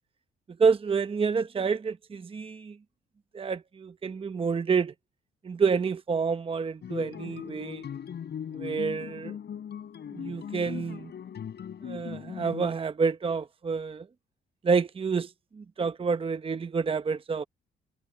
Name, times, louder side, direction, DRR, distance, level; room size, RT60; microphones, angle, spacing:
voice 1, 0.6-2.8 3.3-4.9 5.4-7.8 8.5-9.4 10.1-11.1 11.8-14.1 14.6-17.5, right 5 dB, 25° right, 0.8 m, -28 dB
sound 1, 6.8-12.7, left 8 dB, 60° left, 4.8 m, -39 dB
cardioid pair, 90°, 20 cm